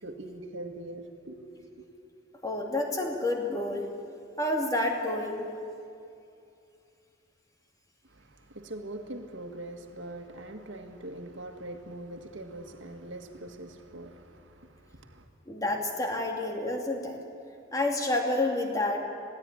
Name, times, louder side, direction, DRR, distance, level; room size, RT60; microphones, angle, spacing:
voice 1, 0.0-1.9 8.0-15.3, right 1 dB, 80° right, 5 dB, 2.0 m, -42 dB
voice 2, 2.4-3.9 4.4-5.5 15.5-17.2 17.7-19.0, left 2 dB, 20° left, 2 dB, 2.3 m, -29 dB
21.5 x 16.0 x 9.9 m, 2.5 s
head